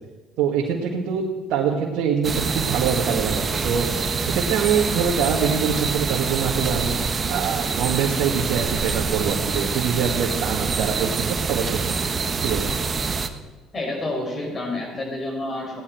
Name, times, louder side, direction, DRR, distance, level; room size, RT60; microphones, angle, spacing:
voice 1, 0.4-3.9 4.3-12.0 12.4-12.7, right 7 dB, 70° right, -2 dB, 1.7 m, -24 dB
sound 1, 2.2-13.3, right 5 dB, 35° right, 1.0 m, -25 dB
voice 2, 13.7-15.8, left 2 dB, 35° left, 0 dB, 5.3 m, -29 dB
16.5 x 11.0 x 4.5 m, 1.3 s
supercardioid pair, 75°, 0 cm